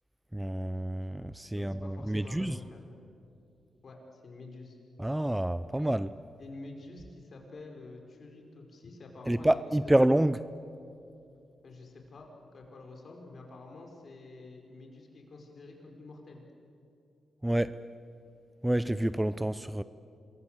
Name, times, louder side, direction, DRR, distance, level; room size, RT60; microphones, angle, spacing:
voice 1, 0.3-2.6 5.0-6.1 9.3-10.4 17.4-17.8 18.6-19.8, right 1 dB, 10° right, 14 dB, 0.6 m, -28 dB
voice 2, 1.5-2.8 3.8-4.8 6.4-9.6 9.8-10.0 11.6-16.4, left 3 dB, 55° left, 2 dB, 5.3 m, -48 dB
26.5 x 22.5 x 8.3 m, 2.6 s
cardioid pair, 80°, 0 cm